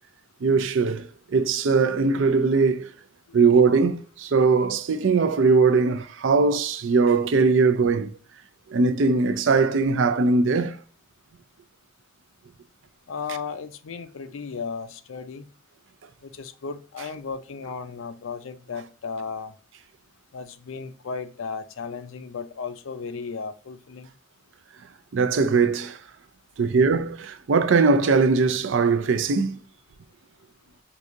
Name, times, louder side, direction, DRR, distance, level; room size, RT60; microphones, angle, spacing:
voice 1, 0.4-1.1 1.3-2.9 3.3-8.1 8.7-10.8 25.1-26.0 26.6-29.6, right 4 dB, 65° right, 0.4 m, -20 dB
voice 2, 13.1-15.5 16.2-19.5 20.3-24.1, left 5 dB, 75° left, 0.5 m, -35 dB
4.7 x 2.7 x 2.5 m
head